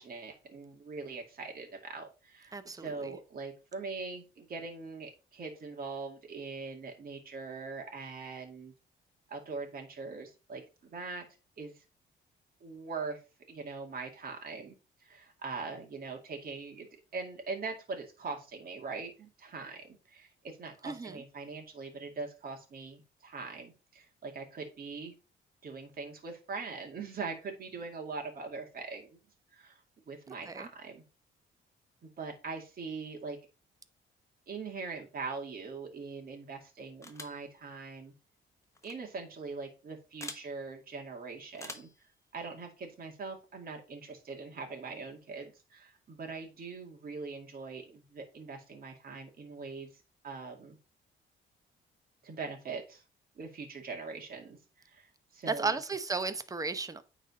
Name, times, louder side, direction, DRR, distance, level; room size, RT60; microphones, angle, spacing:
voice 1, 0.0-8.7 9.3-11.3 11.6-11.8 12.6-13.2 13.5-14.8 15.0-16.9 17.1-25.1 25.6-29.1 29.5-29.8 30.1-31.0 32.0-33.4 34.5-38.1 38.8-41.9 42.3-49.9 50.2-50.8 52.2-53.0 53.4-54.6 54.9-55.7, right 4 dB, 50° right, 2.2 m, -42 dB
voice 2, 2.5-3.2 20.8-21.2 30.5-30.7 55.5-57.0, right 4 dB, 15° right, 0.8 m, -34 dB
sound 1, 37.0-37.4 38.7-38.9 40.2-40.5 41.5-42.0, left 2 dB, 15° left, 1.2 m, -44 dB
9.1 x 4.1 x 4.1 m
cardioid pair, 90°, 20 cm